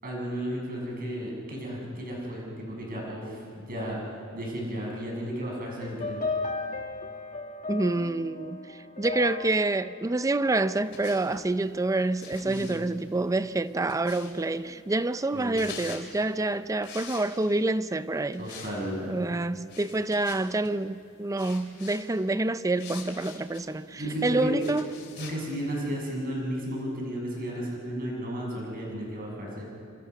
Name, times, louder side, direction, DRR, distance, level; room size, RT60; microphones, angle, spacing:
voice 1, 0.0-4.0 4.3-6.2 12.4-12.7 15.3-15.6 18.4-19.2 23.9-24.6 25.2-29.6, equal, 45° right, 7.0 m, -34 dB
sound 1, 5.8-11.1, left 3 dB, 40° left, 1.7 m, -36 dB
voice 2, 7.7-8.6 9.0-18.5 19.1-24.9, right 2 dB, 15° right, 0.5 m, -27 dB
sound 2, 10.7-11.5 12.2-14.5 15.3-16.1 16.8-17.7 18.3-18.8 19.0-19.2 19.7-20.7 21.4-22.0 22.8-23.7 24.6-25.4, left 6 dB, 55° left, 3.6 m, -44 dB
27.0 x 25.5 x 6.0 m
head